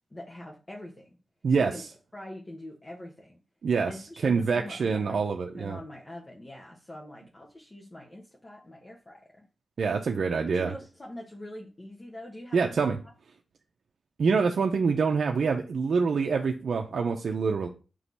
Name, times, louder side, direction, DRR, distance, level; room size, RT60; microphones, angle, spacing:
voice 1, 0.1-1.2 1.6-1.8 2.1-3.4 3.9-5.2 5.5-9.5 10.3-12.8, left 1 dB, 30° left, -1 dB, 1.1 m, -44 dB
voice 2, 4.2-5.8 9.8-10.7 12.5-13.0 14.2-17.7, right 5 dB, 75° right, 2 dB, 0.6 m, -26 dB
6.2 x 3.0 x 5.4 m, 0.34 s
cardioid pair, 75°, 0 cm